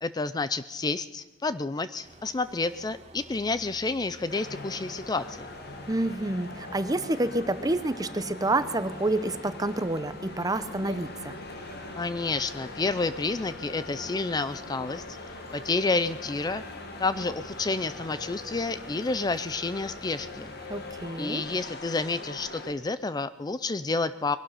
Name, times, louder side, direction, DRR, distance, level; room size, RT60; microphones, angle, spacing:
voice 1, 0.0-5.5 12.0-15.0 15.5-16.6 17.0-20.5 21.2-24.4, left 3 dB, 20° left, 13 dB, 0.4 m, -29 dB
sound 1, 2.0-21.1, right 1 dB, 35° right, 1.7 m, -51 dB
sound 2, 4.3-22.7, left 2 dB, 60° left, 1.8 m, -42 dB
voice 2, 5.9-11.4 20.7-21.4, right 2 dB, 20° right, 12 dB, 0.8 m, -28 dB
21.5 x 12.0 x 5.7 m, 1.1 s
head